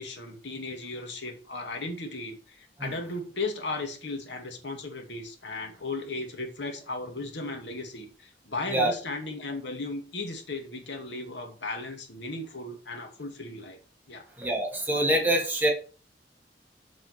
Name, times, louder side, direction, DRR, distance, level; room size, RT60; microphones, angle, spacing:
voice 1, 0.0-13.8 14.1-14.2, left 2 dB, 85° left, 2.4 m, -36 dB
voice 2, 14.4-15.7, right 1 dB, 10° right, 2.5 m, -25 dB
7.4 x 5.3 x 6.7 m
head